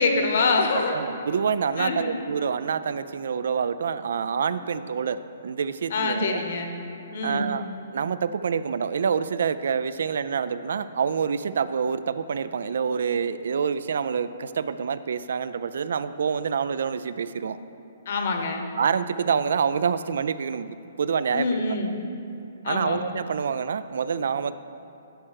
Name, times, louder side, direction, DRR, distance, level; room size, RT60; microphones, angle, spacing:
voice 1, 0.0-1.0 1.8-2.1 5.9-6.7 7.1-7.5 17.5-17.6 18.1-18.6 21.3-21.9 22.6-23.0, left 3 dB, 45° left, 4 dB, 0.9 m, -25 dB
voice 2, 0.9-6.4 7.2-7.7 7.9-17.6 18.8-21.6 22.7-24.5, right 6 dB, 60° right, 14 dB, 0.3 m, -27 dB
11.5 x 4.4 x 6.4 m, 2.7 s
hypercardioid pair, 175°, 0 cm